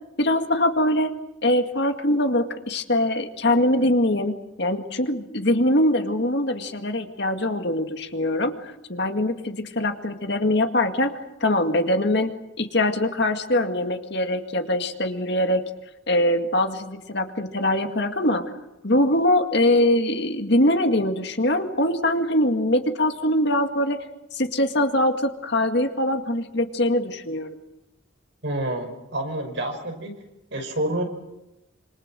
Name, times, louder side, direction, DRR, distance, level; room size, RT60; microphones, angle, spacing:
voice 1, 0.2-1.2 1.4-11.1 11.4-12.3 12.6-15.6 16.1-18.5 18.8-24.0 24.3-27.5, left 1 dB, 55° left, 6 dB, 2.1 m, -22 dB
voice 2, 28.4-30.1 30.5-31.0, right 1 dB, 60° right, 4 dB, 5.6 m, -28 dB
26.5 x 26.0 x 7.6 m, 0.93 s
head